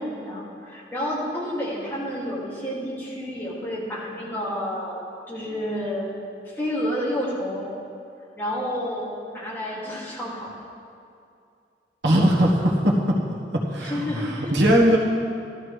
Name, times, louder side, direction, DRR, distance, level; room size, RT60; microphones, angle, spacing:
voice 1, 0.0-6.1 6.4-7.7 8.4-10.5 13.8-14.6, equal, 10° left, -7 dB, 2.4 m, -30 dB
voice 2, 12.0-13.2 13.5-15.0, equal, 85° right, -2 dB, 1.4 m, -20 dB
13.0 x 13.0 x 3.3 m, 2.5 s
head